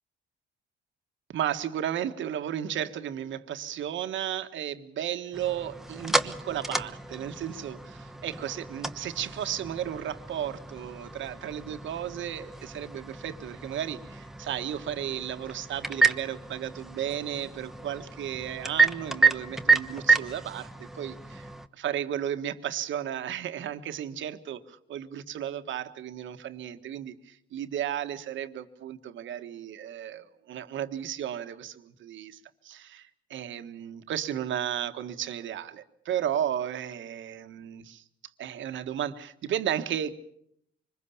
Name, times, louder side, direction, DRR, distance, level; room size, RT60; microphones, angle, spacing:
voice 1, 1.3-38.0 38.4-40.1, right 10 dB, 75° right, 8 dB, 1.5 m, -34 dB
sound 1, 5.3-21.7, right 4 dB, ahead, 1.1 m, -30 dB
25.0 x 21.0 x 7.1 m, 0.70 s
cardioid pair, 90°, 20 cm